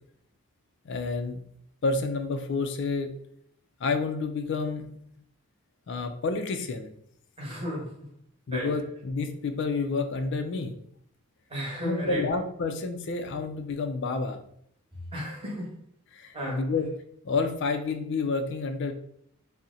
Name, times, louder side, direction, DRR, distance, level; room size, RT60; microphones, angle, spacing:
voice 1, 0.8-1.4 1.8-3.1 3.8-4.9 5.9-6.9 8.5-10.8 11.8-14.4 16.1-16.9 17.2-18.9, left 4 dB, 55° left, 7 dB, 0.3 m, -29 dB
voice 2, 7.4-8.1 8.5-8.7 11.5-12.3 15.1-15.8 16.3-16.6, equal, 25° right, -4 dB, 1.0 m, -34 dB
2.7 x 2.1 x 3.7 m, 0.68 s
head